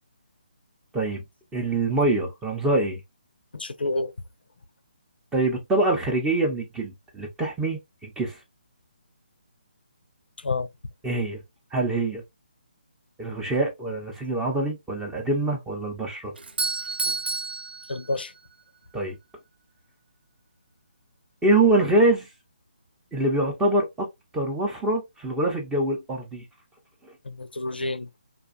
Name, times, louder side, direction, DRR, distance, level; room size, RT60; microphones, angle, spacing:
voice 1, 1.5-3.0 5.3-8.4 11.0-11.4 11.7-12.2 13.2-16.3 18.9-19.2 21.4-22.3 23.1-24.1 24.3-26.4, right 2 dB, 10° right, 0.6 m, -24 dB
voice 2, 3.5-4.1 10.4-10.7 17.9-18.3 27.2-28.1, left 2 dB, 85° left, 0.4 m, -29 dB
Doorbell, 16.4-18.5, right 3 dB, 85° right, 0.5 m, -30 dB
2.5 x 2.2 x 2.5 m
figure-of-eight pair, 150°, 5 cm